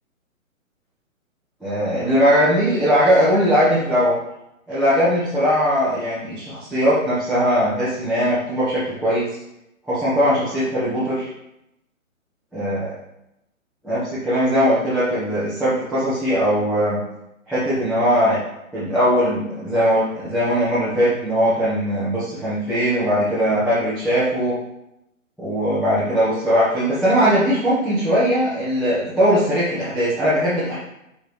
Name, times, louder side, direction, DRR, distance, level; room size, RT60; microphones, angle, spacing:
voice 1, 1.6-4.1 4.7-9.3 9.9-11.3 12.5-12.9 13.8-17.0 17.5-18.4 18.7-24.5 25.4-30.8, equal, ahead, -14 dB, 1.1 m, -20 dB
6.3 x 5.3 x 3.2 m, 0.85 s
figure-of-eight pair, 140°, 42 cm